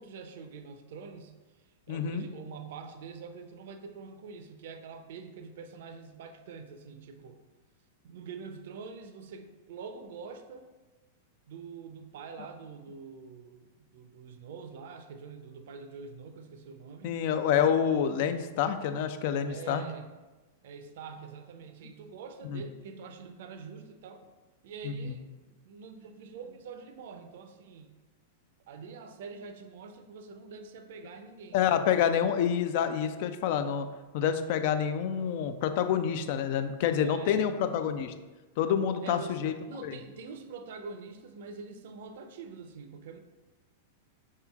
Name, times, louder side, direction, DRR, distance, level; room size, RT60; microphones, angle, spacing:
voice 1, 0.0-1.3 1.6-7.4 8.0-10.7 11.5-17.2 19.4-20.1 20.6-24.3 24.6-27.9 28.7-31.9 36.9-37.8 39.0-43.2, right 5 dB, 65° right, 7 dB, 0.5 m, -45 dB
voice 2, 1.9-2.3 17.0-19.8 22.5-22.6 24.8-25.1 31.5-33.9 34.1-38.1 38.6-39.5 39.8-39.9, left 8 dB, 55° left, 9 dB, 0.3 m, -28 dB
5.5 x 3.6 x 2.3 m, 1.2 s
hypercardioid pair, 100°, 0 cm